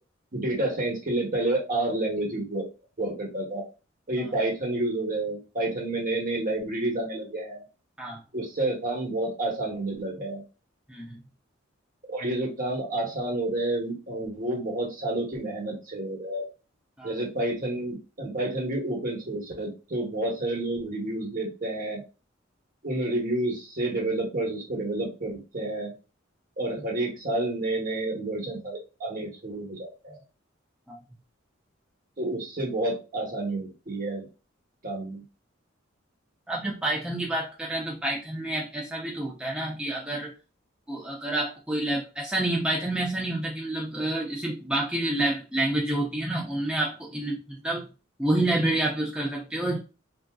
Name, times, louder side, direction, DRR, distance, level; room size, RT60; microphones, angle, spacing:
voice 1, 0.3-2.6 3.0-3.6 4.1-7.6 8.3-10.4 12.1-16.4 17.0-22.0 22.8-25.9 26.6-30.2 32.2-34.2 34.8-35.2, right 2 dB, 45° right, -1 dB, 1.1 m, -29 dB
voice 2, 10.9-11.2 17.0-17.2 30.9-31.0 36.5-40.3 40.9-47.9 48.2-49.8, right 1 dB, 5° right, -3 dB, 0.5 m, -28 dB
3.5 x 2.6 x 2.3 m, 0.30 s
head